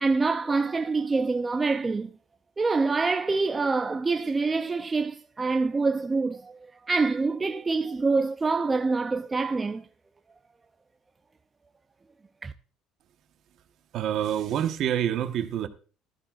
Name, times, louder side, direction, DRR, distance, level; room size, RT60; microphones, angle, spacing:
voice 1, 0.0-2.1 2.6-6.6 6.9-9.8 12.4-12.5, right 3 dB, 20° right, 0.5 m, -26 dB
voice 2, 13.9-15.7, right 10 dB, 55° right, 1.3 m, -27 dB
15.0 x 13.0 x 2.5 m
cardioid pair, 120°, 0 cm